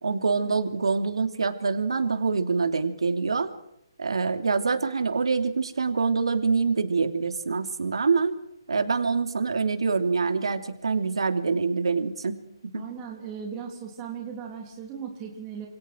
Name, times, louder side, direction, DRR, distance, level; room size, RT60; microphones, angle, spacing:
voice 1, 0.0-3.5 4.0-8.3 8.7-12.4 12.7-12.8, right 4 dB, 85° right, 8 dB, 2.9 m, -25 dB
voice 2, 12.7-15.7, right 7 dB, 15° right, 0 dB, 3.4 m, -37 dB
29.0 x 28.0 x 4.6 m, 0.78 s
hypercardioid pair, 180°, 3 cm